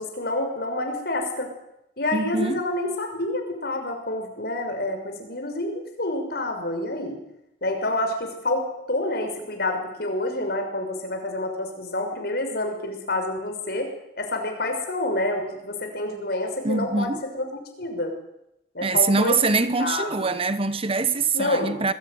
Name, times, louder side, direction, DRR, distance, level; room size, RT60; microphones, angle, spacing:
voice 1, 0.0-1.5 2.0-7.2 7.6-8.6 8.9-13.9 14.2-18.2 18.7-20.3 21.3-21.7, left 2 dB, 55° left, 6.2 m, -28 dB
voice 2, 2.1-2.6 16.6-17.2 18.8-21.9, right 4 dB, 30° right, 1.1 m, -23 dB
26.5 x 21.0 x 9.6 m
head